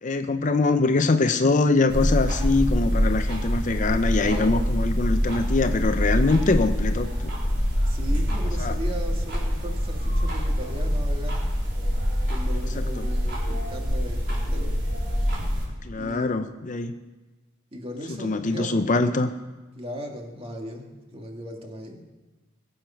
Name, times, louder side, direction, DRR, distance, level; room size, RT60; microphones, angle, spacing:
voice 1, 0.0-7.3 8.6-8.8 12.8-13.1 15.8-16.9 18.2-19.3, left 3 dB, 40° left, 9 dB, 0.6 m, -23 dB
sound 1, 1.9-15.7, equal, 60° right, 4.4 m, -25 dB
voice 2, 4.1-4.8 7.9-11.5 12.3-14.8 16.0-16.9 17.7-19.0 19.8-22.0, equal, 30° right, 2 dB, 1.9 m, -37 dB
21.5 x 7.9 x 5.8 m, 1.2 s
head